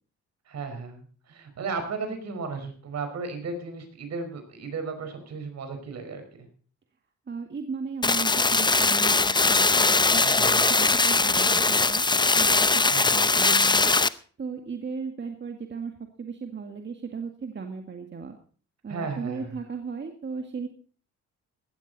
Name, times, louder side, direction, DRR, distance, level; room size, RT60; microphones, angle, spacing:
voice 1, 0.5-6.5 10.2-10.7 12.9-13.2 18.9-19.6, right 4 dB, 60° right, 7 dB, 5.1 m, -35 dB
voice 2, 7.3-12.0 12.3-12.8 13.1-13.9 14.4-15.9 16.2-18.4 18.8-20.7, right 5 dB, 35° right, 5 dB, 2.0 m, -36 dB
sound 1, 8.0-14.1, left 3 dB, 15° left, 0.7 m, -21 dB
17.5 x 13.0 x 4.1 m, 0.42 s
cardioid pair, 90°, 30 cm